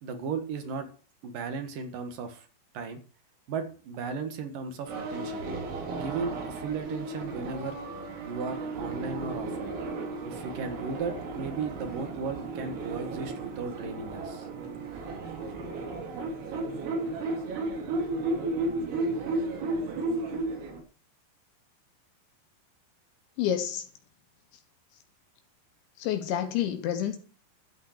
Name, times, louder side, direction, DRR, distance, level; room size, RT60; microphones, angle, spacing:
voice 1, 0.0-0.9 1.2-2.5 2.7-3.0 3.5-5.4 5.9-7.8 8.3-9.7 10.3-14.5, right 5 dB, 60° right, 2.5 m, -35 dB
sound 1, 4.9-20.8, right 2 dB, 85° right, 6.0 m, -34 dB
voice 2, 23.4-23.8 26.0-27.2, left 10 dB, 70° left, 3.4 m, -28 dB
13.0 x 9.2 x 6.6 m
omnidirectional pair, 5.8 m